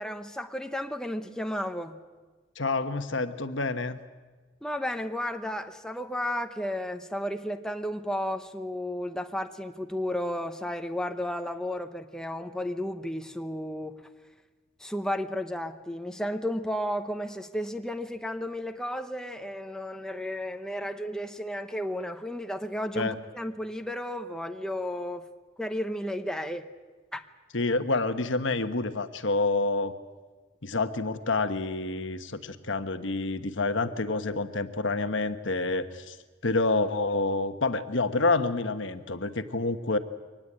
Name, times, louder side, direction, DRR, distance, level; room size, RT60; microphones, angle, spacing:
voice 1, 0.0-2.0 4.6-14.0 14.8-25.3 25.6-26.7 27.1-27.2, left 1 dB, 5° left, 6 dB, 1.0 m, -33 dB
voice 2, 2.6-4.0 23.0-23.1 27.5-29.9 30.6-36.2 36.4-40.0, left 3 dB, 60° left, 9 dB, 1.2 m, -28 dB
24.0 x 19.0 x 8.8 m, 1.4 s
head